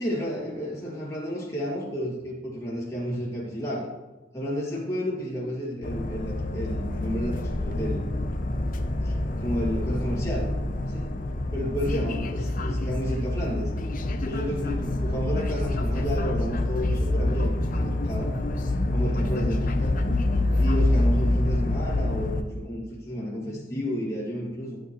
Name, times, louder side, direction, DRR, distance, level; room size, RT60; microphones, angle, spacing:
voice 1, 0.0-3.9 4.3-8.1 9.0-10.5 10.9-11.1 11.5-13.7 14.2-18.3 18.9-20.0 20.6-24.8, equal, 15° left, -5 dB, 2.0 m, -31 dB
sound 1, 5.8-22.4, left 1 dB, 40° left, 0.6 m, -26 dB
11.5 x 7.2 x 3.0 m, 1.1 s
head